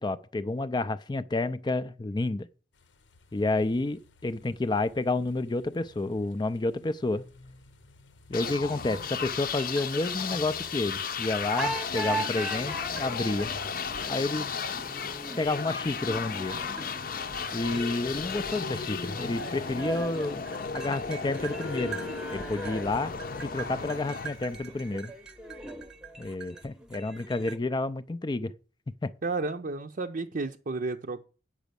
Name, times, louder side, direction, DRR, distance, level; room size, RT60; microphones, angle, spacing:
voice 1, 0.0-2.5 3.3-7.2 8.3-13.5 14.1-14.5 15.4-16.6 17.5-20.4 20.7-22.0 22.3-23.1 23.4-25.1 26.2-28.5 29.0-29.1, left 2 dB, 25° left, 0.4 m, -30 dB
sound 1, 2.7-12.2, left 3 dB, 80° left, 0.9 m, -56 dB
sound 2, 8.3-25.1, left 6 dB, 50° left, 0.7 m, -35 dB
sound 3, 9.2-11.2 11.6-27.6, right 2 dB, 5° right, 0.8 m, -40 dB
voice 2, 29.2-31.2, right 3 dB, 50° right, 0.6 m, -32 dB
9.1 x 6.1 x 6.8 m
head